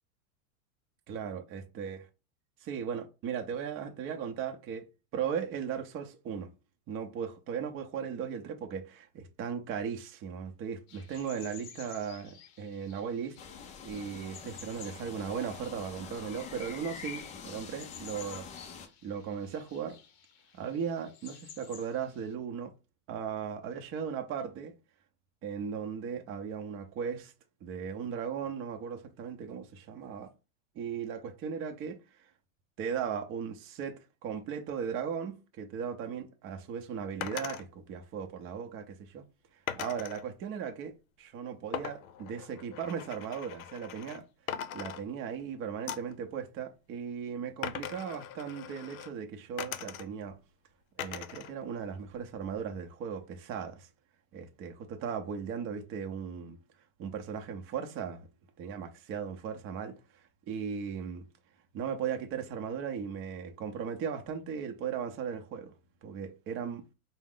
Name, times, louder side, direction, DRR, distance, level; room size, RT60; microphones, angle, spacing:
voice 1, 1.1-2.0 2.6-4.9 5.1-6.5 6.9-13.4 13.8-18.5 19.0-20.0 20.6-22.7 23.1-24.7 25.4-27.3 27.6-30.3 30.8-32.0 32.8-39.2 39.8-44.2 44.7-50.4 51.0-53.9 54.3-56.6 57.0-58.3 58.6-61.3 61.7-65.7 66.0-66.8, right 7 dB, 30° right, 0.6 m, -37 dB
sound 1, 10.9-22.3, left 8 dB, 40° left, 0.8 m, -54 dB
sound 2, 13.4-18.9, left 7 dB, 20° left, 0.3 m, -45 dB
sound 3, 37.2-37.6 39.7-40.2 41.7-44.2 44.5-45.4 45.9-46.2 47.6-49.1 49.6-50.3 51.0-51.5 51.9-52.7, left 9 dB, 80° left, 0.6 m, -40 dB
4.5 x 2.1 x 3.7 m
supercardioid pair, 120°, 42 cm